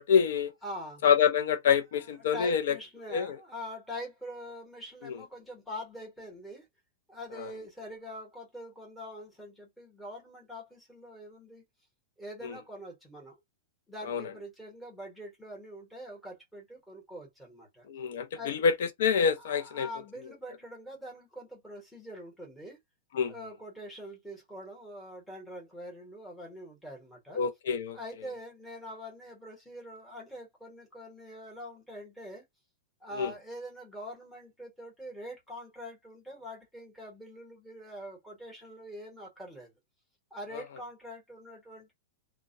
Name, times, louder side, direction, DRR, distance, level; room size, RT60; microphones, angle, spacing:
voice 1, 0.0-0.5 1.0-2.8 3.1-3.4 5.0-5.2 7.4-7.5 12.4-12.5 14.1-14.2 17.9-19.9 23.1-23.3 27.3-28.0 33.2-33.3 40.5-40.6, left 7 dB, 70° left, 0.5 m, -26 dB
voice 2, 0.6-1.0 2.2-6.7 7.1-11.6 12.2-13.4 13.9-17.9 18.3-18.6 19.6-22.8 23.2-27.4 27.9-32.4 33.0-39.7 40.3-41.9, equal, 5° left, 1.1 m, -44 dB
2.3 x 2.1 x 2.5 m
supercardioid pair, 160°, 0 cm